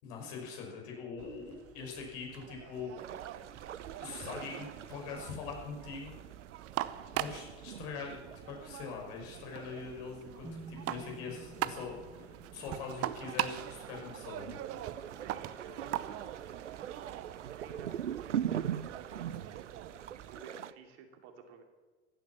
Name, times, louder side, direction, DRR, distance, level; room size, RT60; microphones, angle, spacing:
voice 1, 0.0-2.9 3.2-3.4 4.0-6.1 7.1-14.6, left 5 dB, 60° left, 0 dB, 5.8 m, -43 dB
sound 1, 1.2-20.4, right 14 dB, 40° right, 0.9 m, -43 dB
sound 2, 3.0-20.7, right 10 dB, 90° right, 0.6 m, -43 dB
sound 3, 10.4-14.4, right 2 dB, 5° right, 1.6 m, -52 dB
voice 2, 15.2-16.3 17.6-19.3 20.1-21.6, right 6 dB, 60° right, 4 dB, 2.9 m, -52 dB
15.5 x 11.5 x 7.3 m, 1.3 s
hypercardioid pair, 80°, 35 cm